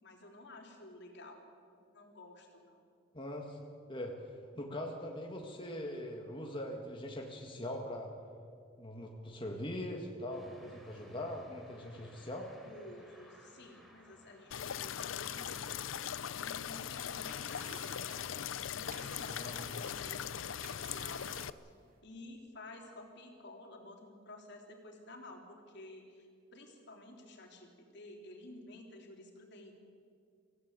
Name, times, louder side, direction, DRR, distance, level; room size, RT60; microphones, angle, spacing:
voice 1, 0.0-1.4 1.9-2.8 12.6-15.8 16.3-21.4 21.6-21.7 22.0-29.7, left 2 dB, 60° left, 2 dB, 3.4 m, -52 dB
voice 2, 3.1-3.6 3.9-8.1 8.8-12.5 19.3-19.8, left 1 dB, 25° left, 0 dB, 1.8 m, -42 dB
sound 1, 10.3-16.0, equal, ahead, 4.2 m, -59 dB
sound 2, 14.5-21.5, left 9 dB, 85° left, 0.5 m, -40 dB
sound 3, 17.3-22.0, right 6 dB, 50° right, 2.5 m, -56 dB
25.5 x 16.0 x 8.2 m, 2.4 s
head